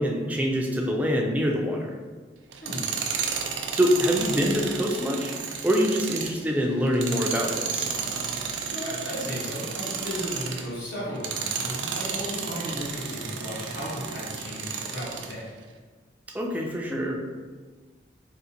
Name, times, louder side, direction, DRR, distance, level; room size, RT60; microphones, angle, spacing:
voice 1, 0.0-1.9 3.7-5.3 5.6-7.8 16.3-17.2, equal, 10° right, 0 dB, 0.3 m, -25 dB
Tools, 2.5-10.7 11.1-15.4, right 6 dB, 85° right, 0.4 m, -32 dB
voice 2, 8.7-15.4, equal, 90° left, -8 dB, 1.1 m, -35 dB
3.7 x 2.5 x 2.8 m, 1.4 s
head